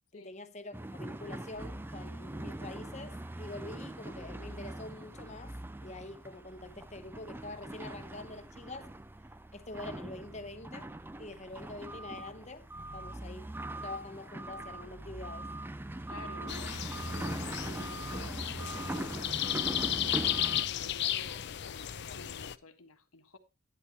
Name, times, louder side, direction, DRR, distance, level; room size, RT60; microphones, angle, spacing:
voice 1, 0.1-5.6 5.8-8.9 9.5-10.9 11.2-12.7 12.9-13.5 13.8-15.5, left 2 dB, 30° left, 1.0 m, -45 dB
sound 1, 0.7-20.7, right 1 dB, 10° right, 0.4 m, -41 dB
voice 2, 16.1-23.4, left 3 dB, 80° left, 1.5 m, -52 dB
sound 2, 16.5-22.6, left 11 dB, 50° left, 0.5 m, -34 dB
11.0 x 9.8 x 2.9 m
head